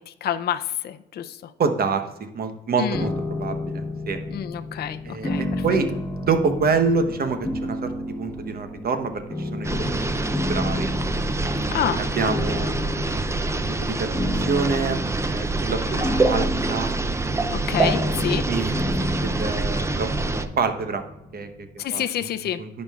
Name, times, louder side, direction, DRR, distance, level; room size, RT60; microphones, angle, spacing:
voice 1, 0.1-1.5 2.8-3.1 4.3-5.4 11.7-12.0 15.9-16.7 17.5-18.4 21.8-22.6, left 10 dB, 55° left, 8 dB, 0.5 m, -28 dB
voice 2, 1.6-4.2 5.0-5.9 6.2-10.1 10.5-10.9 11.5-12.7 13.8-16.9 17.5-17.8 18.5-21.0 21.3-22.0 22.6-22.7, right 4 dB, 50° right, 8 dB, 1.0 m, -27 dB
sound 1, 2.9-21.9, left 1 dB, 15° left, 1.4 m, -31 dB
sound 2, 9.6-20.5, right 3 dB, 15° right, 0.5 m, -26 dB
13.5 x 5.2 x 2.4 m, 0.92 s
cardioid pair, 90°, 20 cm